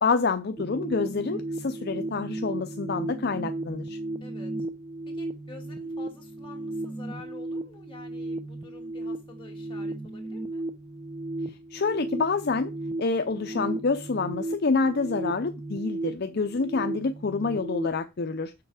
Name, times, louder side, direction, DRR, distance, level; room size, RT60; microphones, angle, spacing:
voice 1, 0.0-4.0 11.7-12.7 13.0-18.5, left 4 dB, 50° left, 0.6 m, -27 dB
sound 1, 0.6-17.9, right 2 dB, 10° right, 0.7 m, -35 dB
voice 2, 4.2-4.5 5.1-10.6, left 4 dB, 25° left, 2.4 m, -48 dB
6.8 x 6.6 x 4.9 m
head